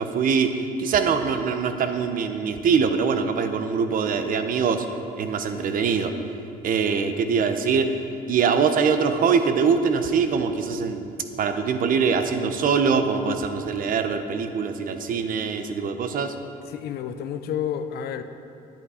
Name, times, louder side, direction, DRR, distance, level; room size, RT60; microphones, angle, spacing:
voice 1, 0.0-4.9 5.2-6.1 6.6-7.9 8.3-11.1 11.4-16.3, right 6 dB, 55° right, 8 dB, 0.8 m, -23 dB
voice 2, 16.6-18.2, left 9 dB, 70° left, 9 dB, 0.6 m, -30 dB
10.5 x 8.3 x 4.9 m, 2.6 s
cardioid pair, 110°, 17 cm